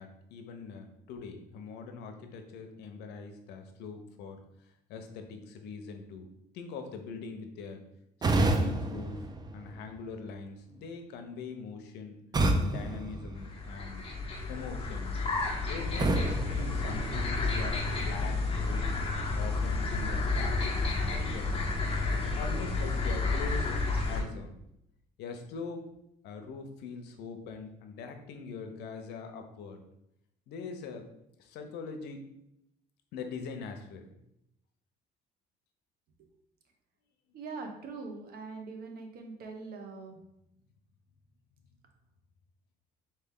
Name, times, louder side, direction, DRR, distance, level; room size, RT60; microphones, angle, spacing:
voice 1, 0.0-4.4 4.9-6.3 6.5-7.8 8.2-9.2 9.5-12.2 12.6-14.1 14.5-15.2 15.7-19.0 19.3-21.7 22.1-23.8 24.1-24.6 25.2-25.9 26.2-29.8 30.5-31.1 31.4-32.2 33.1-34.2, left 5 dB, 85° left, 6 dB, 0.7 m, -42 dB
sound 1, 8.2-10.2 12.3-14.0 16.0-17.6, right 2 dB, 25° right, 0.5 m, -30 dB
sound 2, 13.4-24.2, left 3 dB, 35° left, 0.9 m, -31 dB
voice 2, 37.3-40.2, right 4 dB, 65° right, 3 dB, 0.9 m, -42 dB
4.3 x 3.2 x 3.7 m, 0.81 s
cardioid pair, 110°, 17 cm